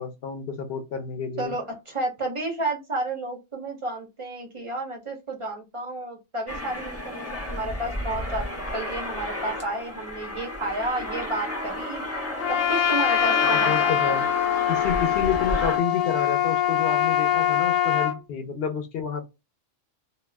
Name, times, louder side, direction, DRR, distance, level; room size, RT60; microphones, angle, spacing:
voice 1, 0.0-1.6 13.4-14.2 14.7-19.3, left 6 dB, 60° left, 0.7 m, -30 dB
voice 2, 1.4-8.5 8.7-12.1 12.5-14.3, right 2 dB, 40° right, 0.4 m, -31 dB
Aircraft, 6.5-15.8, left 1 dB, 15° left, 0.5 m, -32 dB
Trumpet, 12.4-18.2, left 10 dB, 85° left, 1.0 m, -23 dB
2.3 x 2.1 x 3.2 m
omnidirectional pair, 1.3 m